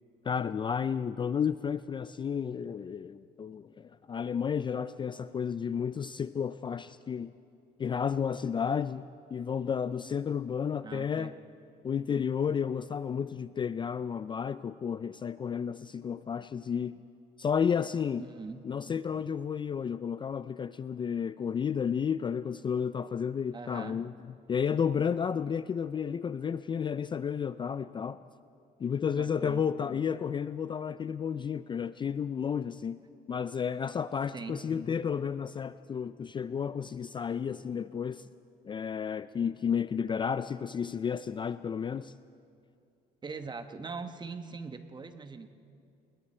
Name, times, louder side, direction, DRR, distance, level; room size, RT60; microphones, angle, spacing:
voice 1, 0.2-7.3 7.8-11.3 11.8-17.0 17.4-18.2 18.7-24.1 24.5-28.2 28.8-33.0 33.3-38.3 38.6-42.1, left 7 dB, 30° left, 14 dB, 0.4 m, -32 dB
voice 2, 10.8-11.3 18.2-18.6 23.5-24.0 29.1-29.6 34.3-34.7 43.2-45.5, right 4 dB, 25° right, 8 dB, 1.2 m, -41 dB
28.5 x 20.5 x 4.4 m, 2.6 s
cardioid pair, 110°, 17 cm